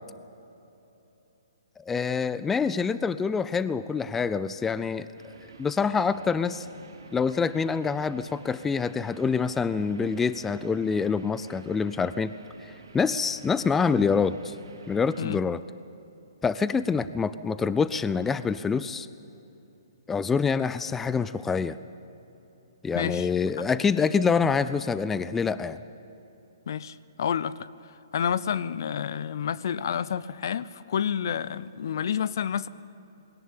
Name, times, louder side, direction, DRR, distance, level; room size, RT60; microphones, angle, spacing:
voice 1, 1.9-5.3 5.6-6.7 7.1-12.3 12.6-14.5 14.9-15.6 16.4-19.1 20.1-21.8 22.8-25.8, left 5 dB, 10° left, 15 dB, 0.5 m, -26 dB
sound 1, 5.2-15.2, right 3 dB, 85° right, 3.3 m, -50 dB
voice 2, 22.9-23.3 23.6-23.7 26.7-27.7 28.1-32.7, left 8 dB, 60° left, 18 dB, 0.7 m, -29 dB
21.0 x 17.5 x 9.0 m, 3.0 s
hypercardioid pair, 140°, 2 cm